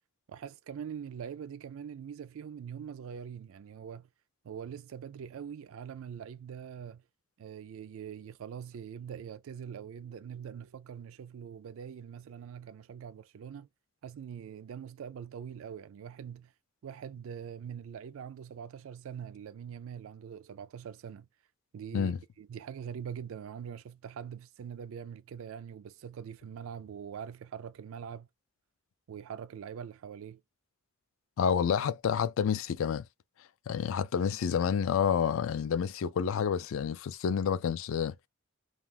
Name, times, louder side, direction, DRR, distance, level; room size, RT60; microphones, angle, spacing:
voice 1, 0.3-4.1 4.4-7.0 7.4-13.7 14.0-16.5 16.8-21.3 21.7-28.3 29.1-30.4, right 7 dB, 60° right, 0.3 m, -43 dB
voice 2, 31.4-33.1 33.7-38.2, left 7 dB, 60° left, 0.3 m, -29 dB
2.4 x 2.3 x 3.3 m
head